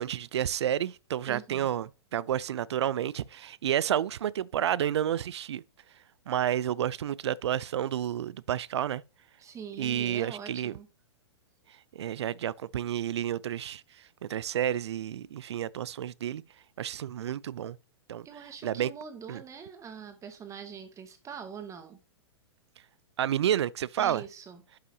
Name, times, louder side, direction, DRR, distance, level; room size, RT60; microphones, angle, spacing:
voice 1, 0.0-5.6 6.3-9.0 9.8-10.7 11.9-13.8 14.3-16.4 16.8-17.8 18.1-18.3 18.6-18.9 19.3-19.4 23.2-24.2, right 10 dB, 75° right, 0.5 m, -30 dB
voice 2, 1.2-1.7 9.4-10.9 18.2-22.0 24.0-24.6, right 7 dB, 20° right, 2.1 m, -43 dB
11.0 x 5.7 x 2.8 m
hypercardioid pair, 120°, 14 cm